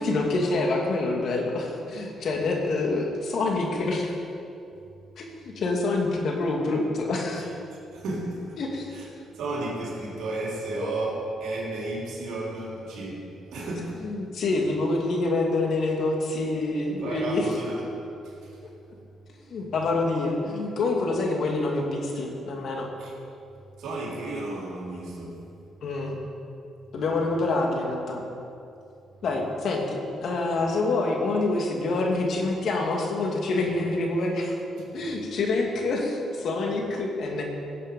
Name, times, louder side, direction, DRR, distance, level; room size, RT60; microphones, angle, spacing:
voice 1, 0.0-4.2 5.2-7.4 8.6-8.9 14.0-17.5 18.6-18.7 19.5-22.9 25.8-26.2 26.9-28.2 29.2-34.6 34.9-37.4, left 2 dB, 60° left, 1 dB, 2.3 m, -26 dB
voice 2, 7.4-8.6 8.9-9.1 9.3-14.0 17.0-18.0 18.2-18.7 23.0-23.1 23.8-25.4 33.6-33.7, right 2 dB, 80° right, -3 dB, 3.6 m, -33 dB
16.5 x 8.4 x 5.4 m, 2.6 s
cardioid pair, 90°, 0 cm